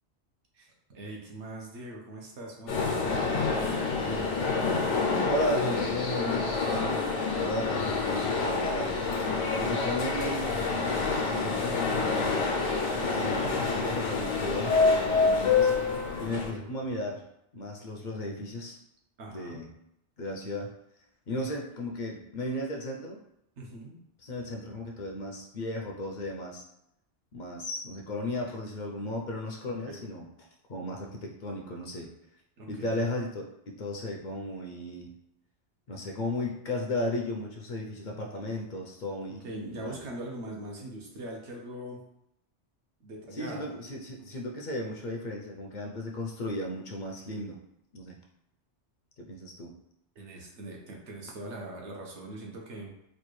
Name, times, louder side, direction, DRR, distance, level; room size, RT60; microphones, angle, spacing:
voice 1, 0.5-4.4 11.9-12.3 16.3-16.7 19.2-19.6 23.6-24.0 29.9-30.0 32.6-33.0 39.4-42.0 43.0-43.7 44.2-44.3 50.2-52.9, right 1 dB, 75° right, -1 dB, 1.1 m, -42 dB
sound 1, 2.7-16.5, left 4 dB, 90° left, 1.1 m, -27 dB
voice 2, 5.3-9.1 9.6-12.4 13.0-15.7 16.2-17.2 17.5-18.8 19.3-19.7 20.2-20.7 21.3-23.2 24.2-26.6 27.3-30.3 30.7-32.1 32.7-35.1 35.9-40.0 43.3-47.6 47.9-48.2 49.2-49.7, left 1 dB, 55° left, 0 dB, 0.6 m, -35 dB
4.2 x 2.4 x 3.1 m, 0.81 s
omnidirectional pair, 1.2 m